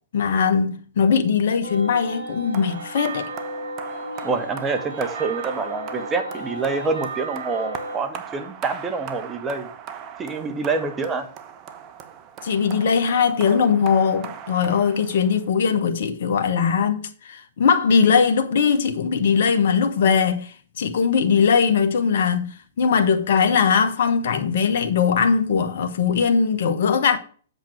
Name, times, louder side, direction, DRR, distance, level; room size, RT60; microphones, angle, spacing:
voice 1, 0.1-3.3 12.4-27.2, left 6 dB, 65° left, 1.2 m, -20 dB
sound 1, 1.6-8.0, right 2 dB, 65° right, 3.3 m, -34 dB
sound 2, 2.5-15.6, right 8 dB, 35° right, 1.1 m, -39 dB
voice 2, 4.2-9.7 10.2-11.3, right 4 dB, 20° right, 1.5 m, -26 dB
8.2 x 7.5 x 4.5 m
hypercardioid pair, 120°, 0 cm